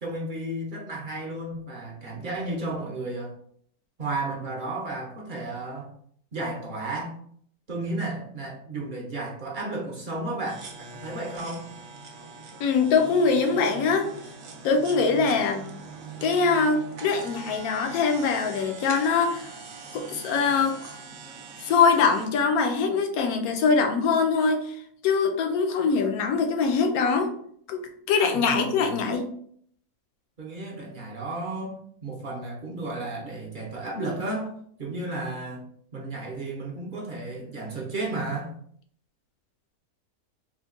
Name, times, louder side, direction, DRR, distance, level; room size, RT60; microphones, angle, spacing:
voice 1, 0.0-3.3 4.0-5.9 6.3-7.1 7.7-11.7 28.3-29.0 30.4-31.8 32.0-34.5 34.8-35.7 35.9-38.5, right 2 dB, 45° right, -2 dB, 0.7 m, -33 dB
sound 1, 10.5-22.3, right 4 dB, 65° right, 1.0 m, -42 dB
voice 2, 12.6-14.1 14.6-15.7 16.2-19.5 19.9-20.8 21.6-24.7 25.0-27.3 27.7-29.3, left 5 dB, 75° left, 5 dB, 1.1 m, -23 dB
3.6 x 2.2 x 3.6 m, 0.63 s
omnidirectional pair, 1.6 m